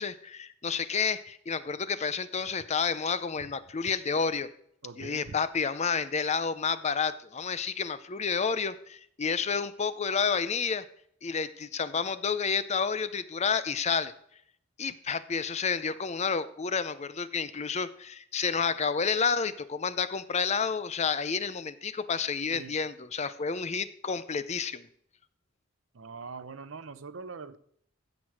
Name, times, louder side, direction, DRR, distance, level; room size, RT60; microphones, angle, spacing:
voice 1, 0.0-4.5 5.0-10.8 11.2-14.1 14.8-24.9, left 5 dB, 35° left, 14 dB, 0.5 m, -30 dB
voice 2, 4.8-5.3 22.5-22.7 25.9-27.6, right 4 dB, 70° right, 15 dB, 0.7 m, -42 dB
16.0 x 6.1 x 4.8 m, 0.68 s
head